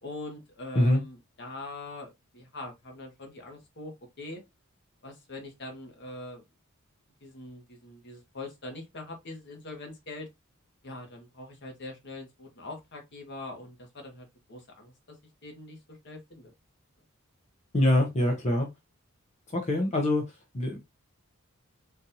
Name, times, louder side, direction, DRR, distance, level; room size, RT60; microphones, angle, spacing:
voice 1, 0.0-3.9 4.2-4.4 5.0-6.4 7.2-10.3 10.8-15.2 15.4-16.5, left 2 dB, 55° left, 1.1 m, -43 dB
voice 2, 17.7-18.7 19.5-20.2 20.5-20.8, left 1 dB, 35° left, 0.7 m, -24 dB
3.9 x 2.5 x 2.7 m
head